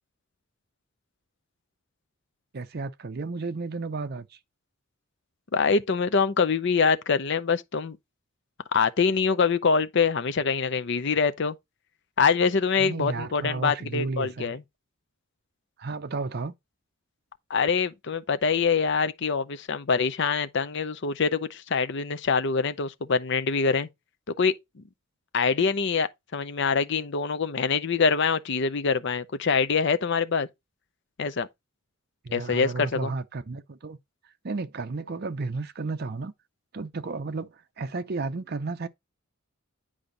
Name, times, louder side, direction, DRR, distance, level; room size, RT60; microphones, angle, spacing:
voice 1, 2.5-4.3 12.8-14.6 15.8-16.5 32.2-34.0 34.4-36.3 36.7-38.9, right 3 dB, 50° right, 0.6 m, -33 dB
voice 2, 5.5-8.0 8.7-11.5 12.2-14.6 17.5-23.9 24.4-24.5 25.3-30.5 31.2-31.5 32.3-33.1, left 5 dB, 60° left, 0.6 m, -24 dB
8.6 x 5.0 x 3.8 m
head